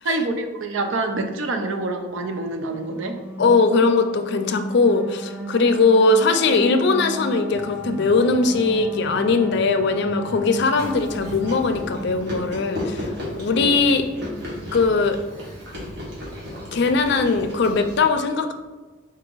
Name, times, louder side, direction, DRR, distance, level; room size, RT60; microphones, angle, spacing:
voice 1, 0.0-3.1 13.6-13.8, right 2 dB, 80° right, 6 dB, 0.6 m, -26 dB
sound 1, 2.5-13.0, right 1 dB, 5° right, 0.4 m, -36 dB
voice 2, 3.4-13.1 13.4-14.0 14.7-15.2 16.7-18.5, left 3 dB, 60° left, 8 dB, 0.4 m, -20 dB
sound 2, 7.4-12.5, equal, 35° right, 1.1 m, -41 dB
Chewing mastication, 10.8-18.0, left 1 dB, 55° right, 1.5 m, -34 dB
4.7 x 2.8 x 3.8 m, 1.3 s
head